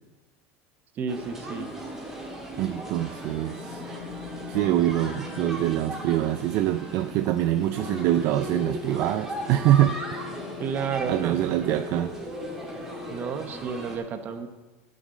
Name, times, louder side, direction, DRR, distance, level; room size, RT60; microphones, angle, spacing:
voice 1, 1.0-1.7 10.6-11.4 13.1-14.5, right 6 dB, 30° right, 8 dB, 0.9 m, -31 dB
sound 1, 1.1-14.0, right 1 dB, 5° right, 2.1 m, -37 dB
voice 2, 2.6-3.8 4.5-10.0 11.1-12.1, right 13 dB, 50° right, 9 dB, 0.4 m, -24 dB
sound 2, 3.4-13.3, left 10 dB, 80° left, 0.9 m, -42 dB
9.4 x 6.5 x 7.5 m, 1.2 s
supercardioid pair, 155°, 6 cm